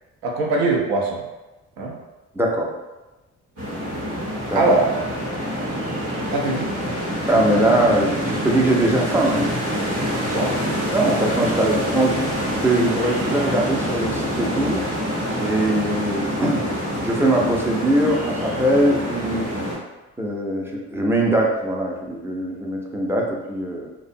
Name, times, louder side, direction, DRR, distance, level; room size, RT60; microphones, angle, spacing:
voice 1, 0.2-1.2 1.8-2.0 4.6-4.9 6.3-6.7 10.3-10.6 11.0-11.2, right 2 dB, 75° right, -1 dB, 0.7 m, -21 dB
voice 2, 2.3-2.7 4.5-4.6 7.3-9.5 10.9-12.2 12.6-14.9 15.4-16.7 17.0-19.5 20.2-23.9, right 1 dB, 5° right, -1 dB, 0.5 m, -21 dB
sound 1, 3.6-19.7, equal, 90° right, 1.0 m, -26 dB
2.5 x 2.1 x 2.6 m, 1.1 s
hypercardioid pair, 45°, 37 cm